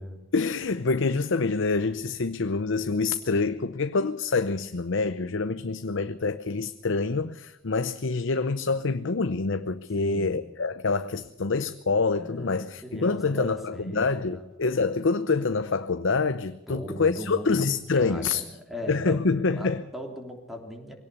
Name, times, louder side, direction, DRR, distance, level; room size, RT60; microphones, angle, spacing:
voice 1, 0.3-18.4 18.9-19.8, left 4 dB, 65° left, 0.7 m, -26 dB
voice 2, 10.0-10.4 12.1-14.5 16.7-17.6 18.0-20.9, equal, ahead, 3.2 m, -39 dB
22.0 x 18.0 x 7.0 m
head